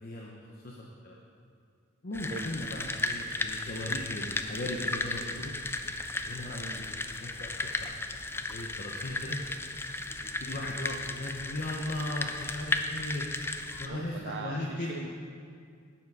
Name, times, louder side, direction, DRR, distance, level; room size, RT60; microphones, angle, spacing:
voice 1, 0.0-0.3 0.6-0.8 1.0-1.2 2.0-5.5 6.2-8.0 8.4-9.4 10.1-13.2 13.8-15.1, left 1 dB, 45° left, -2 dB, 0.8 m, -37 dB
sound 1, 2.1-13.9, left 2 dB, 10° left, 0.4 m, -35 dB
voice 2, 6.5-6.8 13.8-15.1, right 5 dB, 60° right, 6 dB, 0.4 m, -41 dB
11.0 x 7.4 x 4.7 m, 2.3 s
head